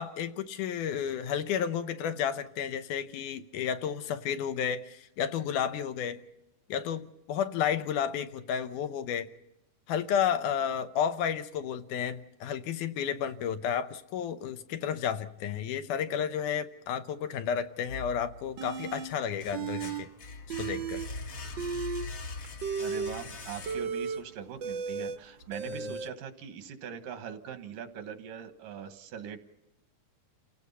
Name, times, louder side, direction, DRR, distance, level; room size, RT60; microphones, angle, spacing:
voice 1, 0.0-6.2 6.7-9.3 9.9-20.1 20.6-21.0 25.7-25.9, left 8 dB, 80° left, 2.3 m, -32 dB
sound 1, 17.9-18.7 19.1-24.2, left 3 dB, 50° left, 2.1 m, -42 dB
sound 2, 18.6-19.1 19.5-20.0 20.3-21.1 21.5-26.1, right 5 dB, 60° right, 1.2 m, -35 dB
voice 2, 22.8-29.4, right 8 dB, 85° right, 2.9 m, -41 dB
29.0 x 16.5 x 5.6 m
omnidirectional pair, 3.7 m